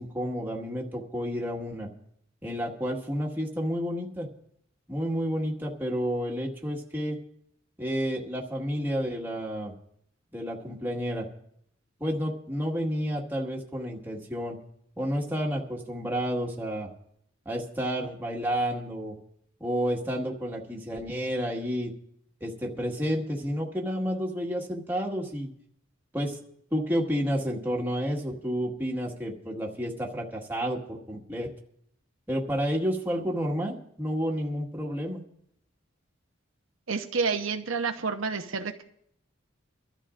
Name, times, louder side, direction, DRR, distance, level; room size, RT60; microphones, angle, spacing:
voice 1, 0.0-1.9 2.4-4.3 4.9-7.2 7.8-9.7 10.3-11.3 12.0-14.6 15.0-16.9 17.4-19.1 19.6-21.9 22.4-25.5 26.1-26.4 26.7-31.5 32.3-35.2, equal, 10° right, -2 dB, 1.8 m, -30 dB
voice 2, 36.9-38.8, right 5 dB, 90° right, 5 dB, 1.0 m, -29 dB
24.5 x 13.0 x 2.6 m, 0.70 s
head